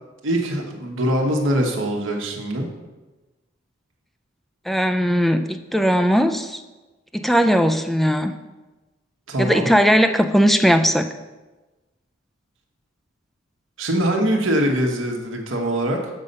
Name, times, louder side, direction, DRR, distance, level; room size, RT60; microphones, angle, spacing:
voice 1, 0.2-2.7 9.3-9.7 13.8-16.1, right 1 dB, 85° right, 1 dB, 1.2 m, -22 dB
voice 2, 4.7-6.6 7.1-8.3 9.4-11.1, equal, ahead, 7 dB, 0.3 m, -18 dB
7.3 x 5.5 x 5.3 m, 1.2 s
head